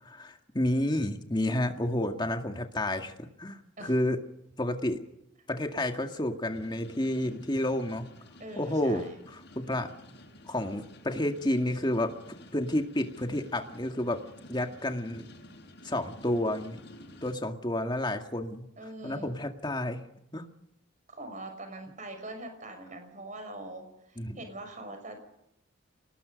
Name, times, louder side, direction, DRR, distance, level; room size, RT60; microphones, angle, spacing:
voice 1, 0.0-4.2 4.6-5.0 5.5-8.1 8.6-9.9 10.5-12.1 12.5-15.2 15.8-16.8 17.2-18.7 19.0-20.0 20.3-20.4 24.2-24.4, left 1 dB, 20° left, 5 dB, 2.0 m, -30 dB
sound 1, 6.5-17.3, left 1 dB, 55° left, 6.9 m, -52 dB
voice 2, 8.4-9.1 18.8-19.3 21.1-25.3, right 1 dB, 35° right, 6 dB, 6.1 m, -43 dB
28.0 x 19.5 x 5.3 m, 0.80 s
head